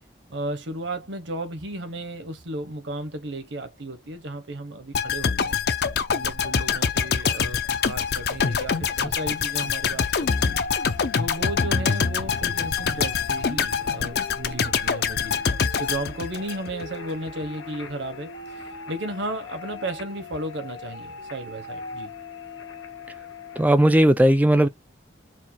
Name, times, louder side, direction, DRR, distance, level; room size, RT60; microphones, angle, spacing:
voice 1, 0.3-5.6 6.1-10.5 11.2-15.4 15.8-22.1, right 1 dB, 70° right, 1.0 m, -34 dB
sound 1, 4.9-16.9 17.3-17.4, left 6 dB, 55° left, 0.5 m, -25 dB
An Introduction, 10.3-23.7, left 3 dB, 80° left, 1.1 m, -40 dB
voice 2, 23.6-24.7, right 1 dB, 10° right, 0.3 m, -17 dB
4.5 x 2.2 x 4.3 m
head